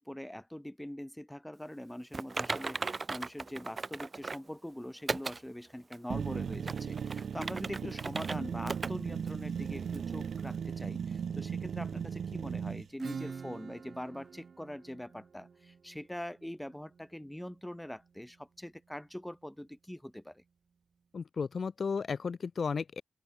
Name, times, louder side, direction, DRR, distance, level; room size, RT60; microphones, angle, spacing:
voice 1, 0.0-20.4, left 1 dB, 5° left, 3.4 m, -43 dB
Typing, 2.1-4.5 5.1-5.4 5.9-6.0 6.5-8.4 8.7-8.9 9.3-9.4 9.9-10.0, right 3 dB, 35° right, 3.0 m, -37 dB
sound 1, 6.1-12.9, right 7 dB, 85° right, 1.2 m, -37 dB
Acoustic guitar / Strum, 13.0-18.4, right 5 dB, 60° right, 1.2 m, -47 dB
voice 2, 21.1-23.0, left 5 dB, 55° left, 1.1 m, -34 dB
wide cardioid pair, 125°, 0 cm